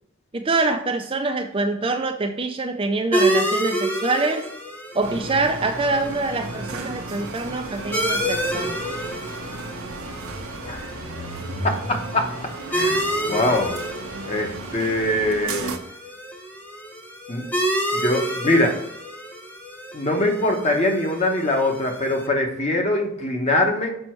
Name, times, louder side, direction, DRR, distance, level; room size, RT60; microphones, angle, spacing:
voice 1, 0.3-4.5 4.9-8.7, right 3 dB, 25° right, 5 dB, 0.4 m, -25 dB
sound 1, 3.1-22.3, right 1 dB, 10° left, 0.9 m, -29 dB
sound 2, 5.0-15.8, right 2 dB, 75° right, 0.9 m, -34 dB
voice 2, 11.6-12.3 12.7-13.0 13.3-13.7 14.2-15.7 17.3-17.5 17.9-18.8 19.9-23.9, left 1 dB, 30° left, 2 dB, 1.1 m, -22 dB
6.9 x 5.3 x 4.5 m, 0.77 s
head